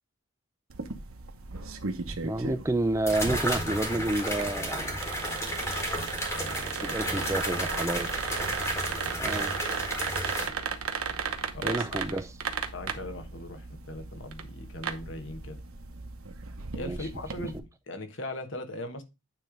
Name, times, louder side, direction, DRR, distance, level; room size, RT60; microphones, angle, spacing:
sound 1, 0.7-17.6, right 5 dB, 80° right, 1.0 m, -36 dB
sound 2, 2.1-2.2 3.1-10.5, equal, 10° left, 1.8 m, -32 dB
voice 1, 2.2-5.1 6.4-8.1 9.2-9.5 11.6-12.3 16.8-17.0, right 2 dB, 15° right, 0.3 m, -30 dB
voice 2, 6.8-7.9 8.7-9.4 11.5-12.0 12.7-15.6 16.7-19.0, left 1 dB, 60° left, 1.2 m, -40 dB
9.2 x 3.3 x 5.0 m
head